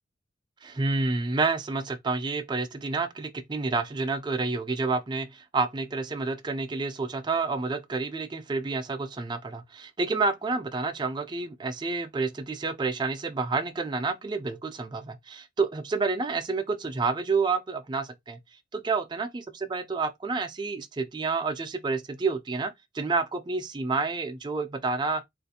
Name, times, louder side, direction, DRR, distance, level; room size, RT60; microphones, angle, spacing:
voice 1, 0.6-18.4 18.7-25.2, right 4 dB, 25° right, 0.4 m, -29 dB
3.9 x 2.5 x 2.7 m
head